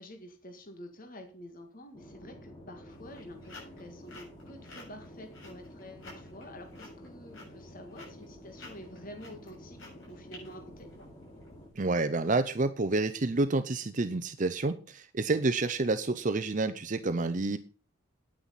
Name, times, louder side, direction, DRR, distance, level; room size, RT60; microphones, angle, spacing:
voice 1, 0.0-9.8 10.0-10.9, left 1 dB, 40° left, 6 dB, 1.8 m, -48 dB
sound 1, 1.9-11.7, equal, 25° left, 2.6 m, -50 dB
sound 2, 2.9-11.5, left 3 dB, 60° left, 7.5 m, -51 dB
voice 2, 11.8-17.6, right 3 dB, 40° right, 11 dB, 0.6 m, -29 dB
10.0 x 9.3 x 5.7 m, 0.39 s
head